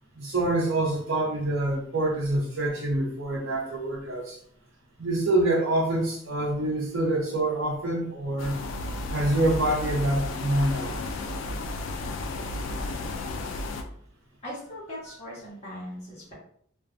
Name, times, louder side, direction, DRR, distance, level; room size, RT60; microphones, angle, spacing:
voice 1, 0.2-4.4 5.0-8.6 9.1-11.0, right 1 dB, 70° right, -2 dB, 0.7 m, -26 dB
sound 1, 8.4-13.8, left 2 dB, 65° left, 0.3 m, -33 dB
voice 2, 14.4-16.3, equal, 30° left, -8 dB, 1.2 m, -39 dB
2.5 x 2.2 x 2.5 m, 0.62 s
head